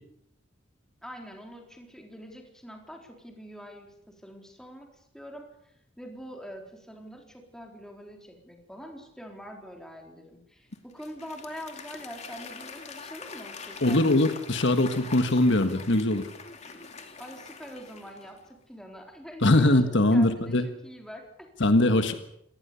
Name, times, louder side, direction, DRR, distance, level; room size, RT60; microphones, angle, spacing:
voice 1, 1.0-14.0 17.2-21.7, equal, 5° left, 2 dB, 4.2 m, -44 dB
Applause / Crowd, 10.7-18.5, left 5 dB, 35° left, 2.7 m, -44 dB
voice 2, 13.8-16.3 19.4-20.7 21.6-22.1, left 1 dB, 60° left, 8 dB, 1.6 m, -22 dB
27.0 x 19.0 x 7.0 m, 0.75 s
head